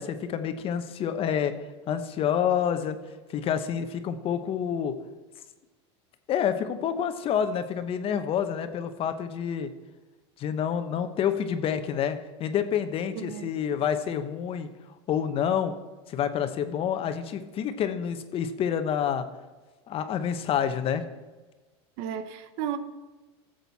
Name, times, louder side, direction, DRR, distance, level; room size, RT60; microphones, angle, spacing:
voice 1, 0.0-1.5 1.9-3.0 3.3-5.0 6.3-9.7 10.4-14.7 15.1-15.8 16.1-19.2 19.9-21.0, left 8 dB, 40° left, 1.1 m, -28 dB
voice 2, 13.1-13.5 22.0-22.8, right 9 dB, 65° right, 1.0 m, -33 dB
14.5 x 7.8 x 4.2 m
supercardioid pair, 115°, 14 cm